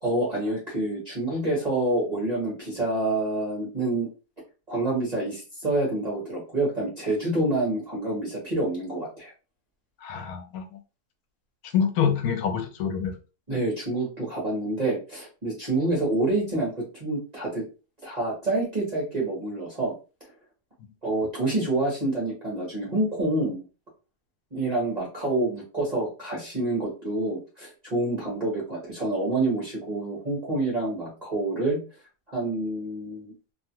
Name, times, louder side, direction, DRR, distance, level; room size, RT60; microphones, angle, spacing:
voice 1, 0.0-4.1 4.7-9.3 13.5-17.6 18.0-19.9 21.0-23.6 24.5-31.8 32.3-33.3, right 2 dB, 30° right, -5 dB, 1.0 m, -27 dB
voice 2, 10.0-10.7 11.7-13.1, left 7 dB, 85° left, 7 dB, 1.1 m, -26 dB
2.8 x 2.3 x 2.8 m, 0.32 s
omnidirectional pair, 1.6 m